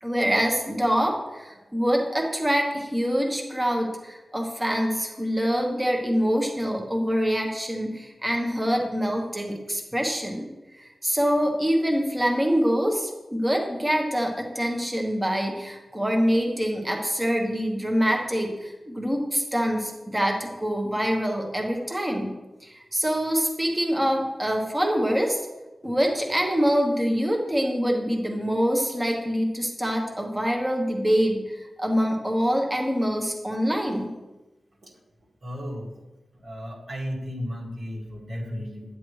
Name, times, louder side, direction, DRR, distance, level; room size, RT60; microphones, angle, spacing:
voice 1, 0.0-10.4 10.8-22.3 22.6-25.4 25.8-34.1, equal, 10° right, 1 dB, 1.1 m, -25 dB
voice 2, 35.4-35.9 36.3-39.0, equal, 65° right, -3 dB, 2.0 m, -34 dB
9.2 x 8.8 x 3.2 m, 1.1 s
wide cardioid pair, 125°, 0 cm